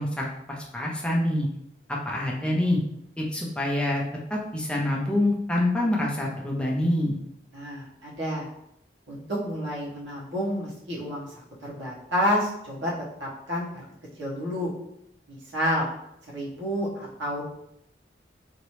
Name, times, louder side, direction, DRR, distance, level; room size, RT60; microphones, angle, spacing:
voice 1, 0.0-1.5 1.9-2.8 3.2-4.0 4.3-7.1, left 1 dB, 5° left, -3 dB, 0.5 m, -26 dB
voice 2, 7.5-8.5 9.1-11.3 11.6-12.9 13.2-13.8 14.2-14.7 15.3-15.9 16.3-17.4, equal, 85° right, -7 dB, 1.4 m, -29 dB
2.9 x 2.9 x 3.1 m, 0.77 s
head